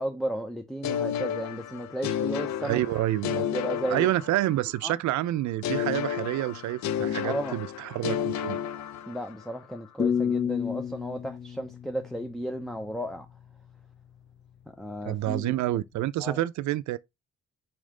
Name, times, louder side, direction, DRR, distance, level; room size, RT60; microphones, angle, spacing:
voice 1, 0.0-2.8 3.2-4.1 4.8-5.0 7.2-7.6 9.1-13.3 14.8-15.8 16.2-16.4, right 1 dB, ahead, 0.5 m, -34 dB
sound 1, 0.8-4.8 5.6-9.5, left 9 dB, 65° left, 0.5 m, -32 dB
voice 2, 2.6-3.5 3.9-8.6 15.0-17.0, right 15 dB, 70° right, 0.4 m, -28 dB
sound 2, 10.0-13.0, left 7 dB, 35° left, 0.8 m, -30 dB
4.4 x 3.2 x 3.6 m
cardioid pair, 90°, 30 cm